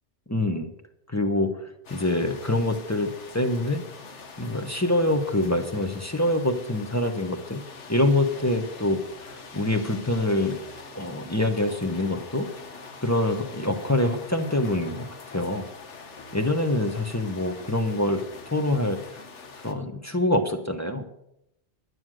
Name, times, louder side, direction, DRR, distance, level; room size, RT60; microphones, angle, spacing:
voice 1, 0.3-0.7 1.1-3.8 4.4-7.6 7.9-10.6 10.9-12.5 13.0-15.0 15.3-15.6 16.3-19.2 19.6-21.0, left 1 dB, 15° left, 6 dB, 1.0 m, -25 dB
sound 1, 1.8-19.7, left 4 dB, 85° left, 1.5 m, -44 dB
11.0 x 9.6 x 6.3 m, 0.79 s
omnidirectional pair, 1.2 m